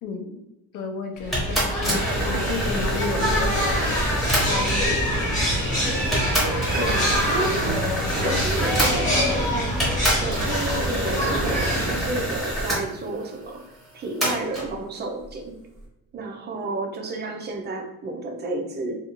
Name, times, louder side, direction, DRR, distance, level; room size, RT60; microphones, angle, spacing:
voice 1, 0.0-0.4 0.7-3.8 4.4-5.0, left 4 dB, 55° left, 5 dB, 0.5 m, -32 dB
sound 1, 1.2-12.8, equal, 20° left, 1.0 m, -24 dB
sound 2, 1.3-4.9 5.6-5.7 6.1-9.4 9.8-12.8 14.2-14.7, equal, ahead, 0.8 m, -28 dB
voice 2, 6.7-7.8 8.2-9.8 10.2-13.6 13.9-15.6 16.1-19.0, right 3 dB, 30° right, 2 dB, 0.4 m, -31 dB
2.5 x 2.3 x 2.8 m, 0.93 s
cardioid pair, 155°, 38 cm